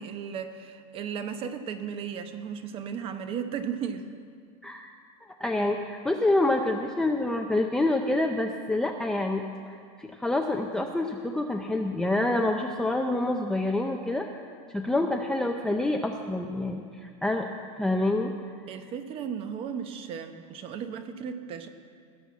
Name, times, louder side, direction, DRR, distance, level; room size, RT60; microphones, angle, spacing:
voice 1, 0.0-4.0 18.7-21.7, right 7 dB, 35° right, 9 dB, 0.9 m, -35 dB
voice 2, 5.4-17.5 17.8-18.3, left 2 dB, 5° left, 2 dB, 0.5 m, -27 dB
17.5 x 6.2 x 7.2 m, 2.1 s
supercardioid pair, 140°, 16 cm